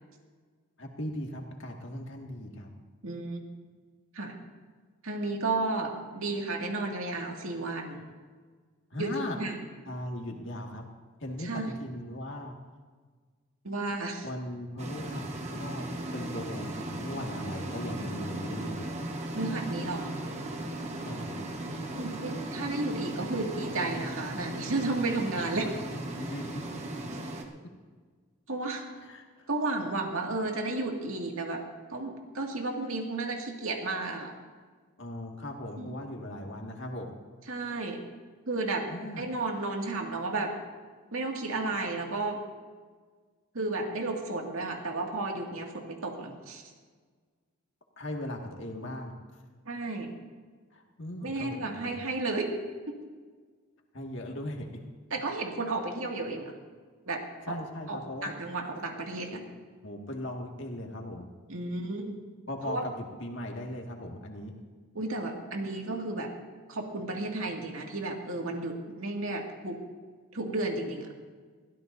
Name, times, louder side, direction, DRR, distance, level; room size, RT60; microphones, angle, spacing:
voice 1, 0.8-2.7 8.9-9.4 9.9-10.9 11.2-12.6 14.2-15.9 16.1-18.9 21.0-21.4 25.9-26.8 29.0-29.5 35.0-37.1 38.9-39.2 48.0-49.2 50.7-52.0 53.9-54.8 57.5-58.3 59.8-61.3 62.5-64.5, left 1 dB, 60° left, 1 dB, 2.0 m, -38 dB
voice 2, 3.0-3.4 4.1-4.4 5.0-8.0 9.0-9.6 11.4-11.7 13.6-14.2 19.3-20.1 21.9-25.7 28.5-28.8 29.5-31.6 31.9-34.3 35.8-36.0 37.5-38.0 38.5-38.8 39.2-40.5 41.1-42.4 43.5-46.6 49.7-50.1 51.2-52.5 52.9-53.0 55.1-56.5 57.1-57.2 57.5-57.6 57.9-59.5 61.5-62.2 62.6-62.8 64.9-66.3 66.7-69.8 70.3-71.1, right 2 dB, 75° right, 1 dB, 2.2 m, -33 dB
sound 1, 14.8-27.4, right 1 dB, 30° right, 1.3 m, -37 dB
22.0 x 16.0 x 2.7 m, 1.5 s
head